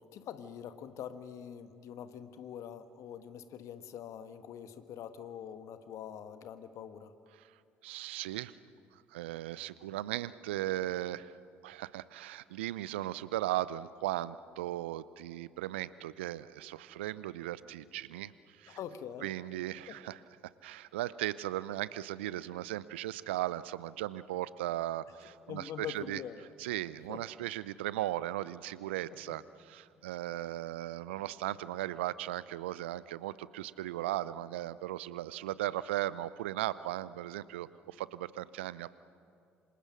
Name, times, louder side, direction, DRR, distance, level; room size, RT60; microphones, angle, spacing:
voice 1, 0.1-7.1 18.7-19.3 19.9-20.0 25.5-26.4 27.1-27.2 29.1-29.4, left 9 dB, 55° left, 10 dB, 1.5 m, -44 dB
voice 2, 7.8-8.5 9.1-11.3 11.6-18.3 18.6-18.8 19.2-20.2 20.6-26.2 26.6-29.4 29.7-38.9, right 14 dB, 75° right, 18 dB, 0.6 m, -37 dB
27.5 x 26.5 x 6.3 m, 2.5 s
hypercardioid pair, 55°, 6 cm